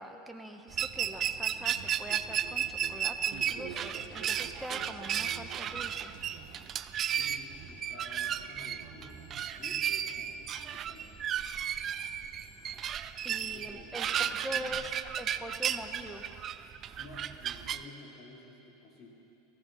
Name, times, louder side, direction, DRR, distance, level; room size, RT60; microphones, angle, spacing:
voice 1, 0.0-6.1 13.2-14.9 15.2-16.2, equal, 5° right, 4 dB, 1.3 m, -43 dB
sound 1, 0.7-17.8, right 9 dB, 40° right, 0.4 m, -34 dB
sound 2, 0.9-6.7 7.0-8.0 8.3-9.5 10.5-10.6 11.8-11.9 12.4-12.5, right 7 dB, 60° right, 1.4 m, -49 dB
voice 2, 7.2-11.1 13.2-14.8 17.0-19.1, left 2 dB, 40° left, -3 dB, 3.9 m, -52 dB
sound 3, 9.1-13.7, left 3 dB, 15° left, 4.3 m, -67 dB
18.0 x 15.0 x 4.3 m, 2.9 s
hypercardioid pair, 90°, 0 cm